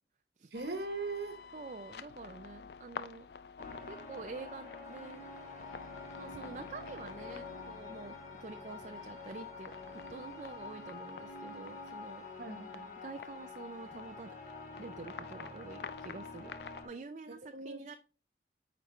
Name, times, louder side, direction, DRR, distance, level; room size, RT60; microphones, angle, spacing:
sound 1, 0.5-16.9, left 6 dB, 70° left, 0.4 m, -50 dB
voice 1, 0.5-1.4 12.4-12.9 17.3-17.8, right 3 dB, 70° right, 1.1 m, -40 dB
voice 2, 1.5-3.3 3.9-5.2 6.2-8.1 8.4-9.7 10.1-12.2 13.0-14.3 14.8-16.6 16.8-18.0, right 3 dB, 40° right, 0.4 m, -47 dB
sound 2, 3.6-16.9, left 3 dB, 45° left, 1.9 m, -47 dB
8.7 x 5.1 x 3.1 m
head